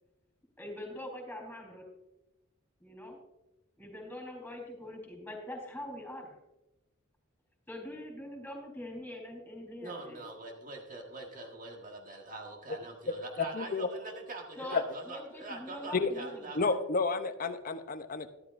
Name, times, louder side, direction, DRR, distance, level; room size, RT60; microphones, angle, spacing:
voice 1, 0.6-1.9 2.8-3.2 3.8-6.3 7.7-10.2 14.5-16.5, left 1 dB, 5° left, 2 dB, 4.0 m, -43 dB
voice 2, 9.8-16.8, right 2 dB, 40° right, 1 dB, 1.6 m, -44 dB
voice 3, 13.5-13.9 14.7-14.8 15.9-16.1 16.5-18.3, left 4 dB, 45° left, 10 dB, 0.7 m, -30 dB
13.0 x 12.5 x 2.6 m, 0.96 s
head